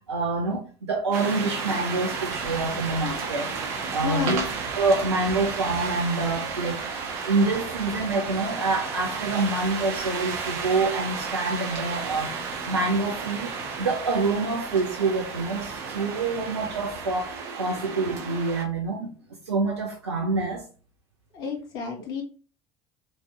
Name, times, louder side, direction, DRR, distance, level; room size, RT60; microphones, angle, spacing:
voice 1, 0.1-4.4 4.8-19.1 19.4-20.7, right 3 dB, 85° right, 0.6 m, -27 dB
sound 1, 1.1-18.6, right 5 dB, 65° right, 1.2 m, -33 dB
voice 2, 4.0-4.5 21.3-22.2, left 6 dB, 70° left, 1.6 m, -30 dB
5.4 x 2.9 x 3.2 m
figure-of-eight pair, 60°, 14 cm